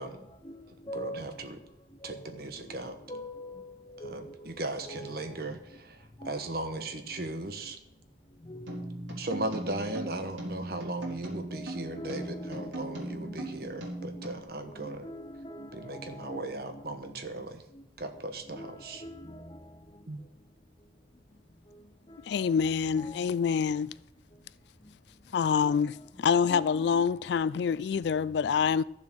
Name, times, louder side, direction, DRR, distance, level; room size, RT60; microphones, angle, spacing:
voice 1, 0.0-1.4 2.0-2.3 2.6-4.5 4.8-5.2 6.2-6.3 6.6-6.8 8.4-8.9 10.3-10.4 11.5-13.5 14.0-14.3 14.6-17.2 17.7-17.8 18.5-19.6 22.1-23.3 25.6-25.8 26.2-27.1, equal, 25° left, 1.0 m, -44 dB
voice 2, 0.9-1.6 2.0-3.0 4.0-6.0 6.2-7.8 9.2-15.1 15.7-17.6 18.0-19.0 20.1-20.2, right 2 dB, 55° right, 1.3 m, -37 dB
sound 1, 8.7-14.4, right 1 dB, 85° right, 3.9 m, -39 dB
voice 3, 22.3-23.9 25.3-28.8, left 6 dB, 65° left, 0.3 m, -26 dB
13.5 x 7.3 x 6.3 m
head